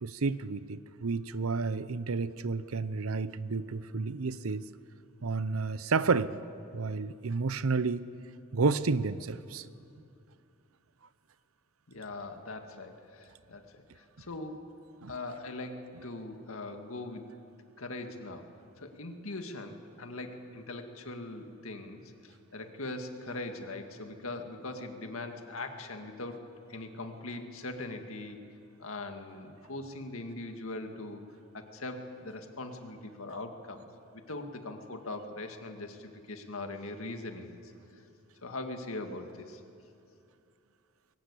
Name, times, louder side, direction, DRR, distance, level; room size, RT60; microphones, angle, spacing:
voice 1, 0.0-4.6 5.2-6.4 6.7-8.1 8.5-9.6 15.0-15.1, right 4 dB, 80° right, 15 dB, 0.7 m, -31 dB
voice 2, 11.9-14.6 15.1-17.3 17.8-18.5 18.8-26.4 26.7-28.4 28.8-31.2 31.5-33.8 34.1-37.7 38.4-39.6, left 2 dB, 75° left, 5 dB, 2.0 m, -41 dB
21.5 x 18.5 x 8.4 m, 2.5 s
head